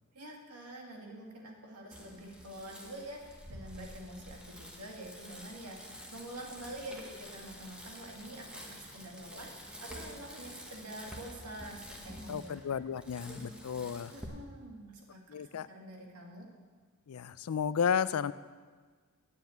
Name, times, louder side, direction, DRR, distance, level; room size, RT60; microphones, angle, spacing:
voice 1, 0.1-12.5 14.1-16.5, right 1 dB, 90° right, 0 dB, 2.0 m, -47 dB
Bicycle, 1.9-14.2, equal, 5° right, 1.3 m, -49 dB
voice 2, 12.3-14.1 15.3-15.7 17.1-18.3, left 7 dB, 70° left, 16 dB, 0.4 m, -33 dB
9.5 x 7.4 x 7.9 m, 1.5 s
head